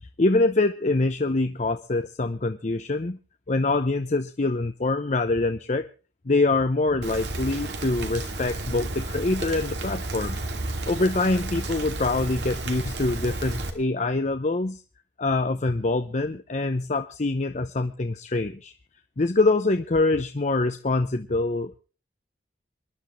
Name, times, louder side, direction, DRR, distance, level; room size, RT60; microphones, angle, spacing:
voice 1, 0.2-3.2 3.5-5.9 6.3-10.5 10.9-14.8 15.2-18.7 19.2-21.8, left 2 dB, 40° left, 8 dB, 0.7 m, -25 dB
Rain, 7.0-13.7, right 2 dB, 75° right, 2.4 m, -32 dB
27.5 x 11.0 x 3.2 m, 0.36 s
head